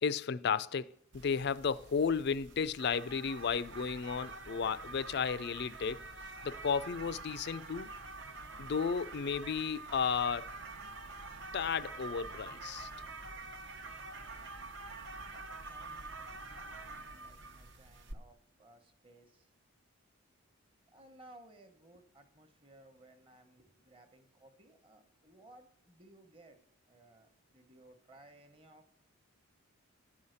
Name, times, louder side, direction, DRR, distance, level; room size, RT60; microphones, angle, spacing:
voice 1, 0.0-6.0 6.4-7.9 8.6-10.5 11.5-12.9, left 6 dB, 50° left, 0.4 m, -33 dB
sound 1, 1.1-18.1, right 3 dB, 55° right, 0.9 m, -47 dB
voice 2, 15.2-19.5 20.9-26.6 26.9-28.8, right 1 dB, 25° right, 1.1 m, -60 dB
11.5 x 5.6 x 7.9 m
head